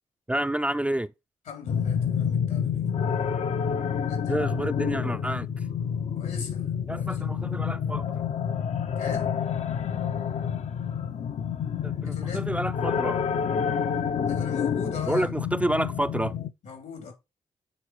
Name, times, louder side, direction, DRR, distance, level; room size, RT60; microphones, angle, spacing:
voice 1, 0.3-1.1 4.3-5.5 6.9-8.2 11.8-13.2 15.1-16.4, right 1 dB, 10° right, 0.4 m, -29 dB
voice 2, 1.5-2.9 4.1-4.4 6.1-7.5 9.0-9.3 12.0-12.5 14.3-15.5 16.6-17.1, left 5 dB, 85° left, 3.3 m, -40 dB
sound 1, 1.7-16.5, left 7 dB, 60° left, 0.6 m, -28 dB
8.2 x 3.9 x 4.7 m
supercardioid pair, 55°, 13 cm